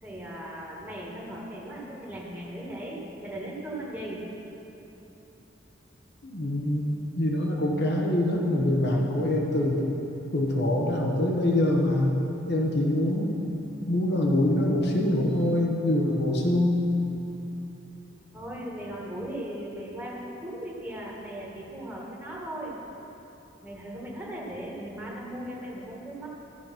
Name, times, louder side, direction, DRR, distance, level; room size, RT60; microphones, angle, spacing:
voice 1, 0.0-4.2 18.3-22.8 23.6-26.3, right 1 dB, 10° right, -5 dB, 1.5 m, -38 dB
voice 2, 6.2-9.8 10.3-12.2 12.5-13.4 13.9-16.9, left 1 dB, 55° left, -1 dB, 1.1 m, -24 dB
14.0 x 5.3 x 5.9 m, 3.0 s
head